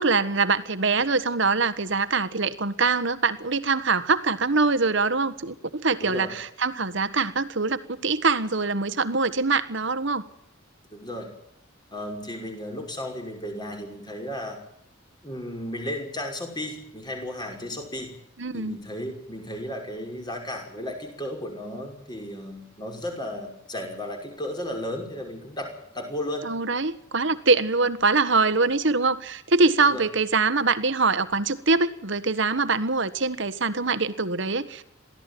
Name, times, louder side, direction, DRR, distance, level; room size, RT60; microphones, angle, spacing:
voice 1, 0.0-10.2 18.4-18.8 26.4-34.8, right 4 dB, 55° right, 14 dB, 1.4 m, -23 dB
voice 2, 6.0-6.4 10.9-11.3 11.9-14.6 15.2-18.1 18.5-25.7 25.9-26.5 29.9-30.0, left 1 dB, 20° left, 4 dB, 5.9 m, -34 dB
23.0 x 16.0 x 9.3 m, 0.74 s
head